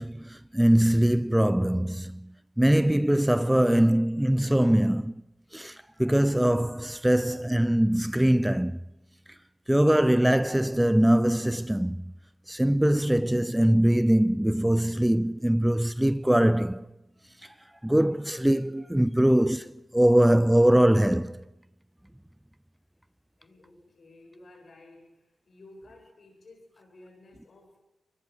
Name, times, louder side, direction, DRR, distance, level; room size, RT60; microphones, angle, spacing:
voice 1, 0.0-2.2 2.6-5.2 5.5-5.7 6.0-8.8 9.7-12.0 12.5-16.8 17.8-21.4, right 1 dB, 10° right, 0.7 m, -22 dB
voice 2, 23.4-27.8, left 2 dB, 60° left, 7.8 m, -53 dB
23.0 x 21.0 x 6.8 m
supercardioid pair, 40°, 0 cm